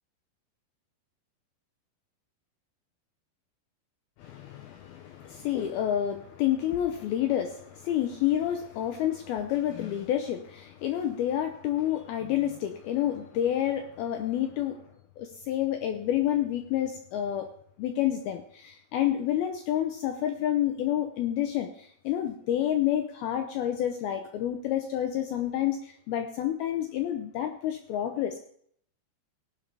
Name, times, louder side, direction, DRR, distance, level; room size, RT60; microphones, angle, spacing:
voice 1, 4.2-14.8 15.2-17.5 17.8-28.4, left 11 dB, 80° left, 6 dB, 2.2 m, -29 dB
17.5 x 11.0 x 3.4 m, 0.63 s
omnidirectional pair, 5.3 m